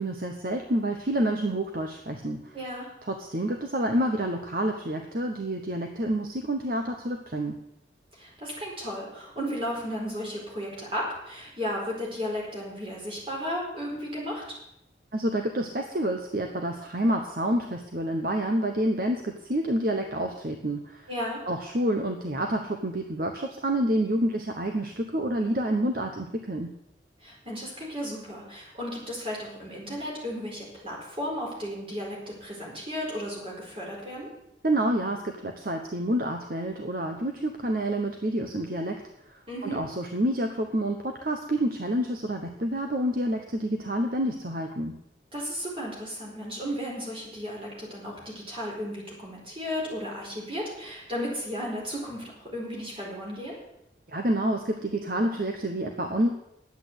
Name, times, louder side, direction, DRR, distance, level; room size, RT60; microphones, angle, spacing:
voice 1, 0.0-2.5 3.1-7.6 15.1-21.1 21.5-26.7 34.6-39.0 39.3-44.9 54.1-56.3, right 1 dB, 50° right, 4 dB, 1.0 m, -28 dB
voice 2, 2.5-2.9 8.1-14.5 21.1-21.4 27.2-34.3 39.5-39.8 45.3-53.6, equal, 30° right, -3 dB, 4.4 m, -34 dB
10.5 x 8.4 x 8.1 m, 0.81 s
head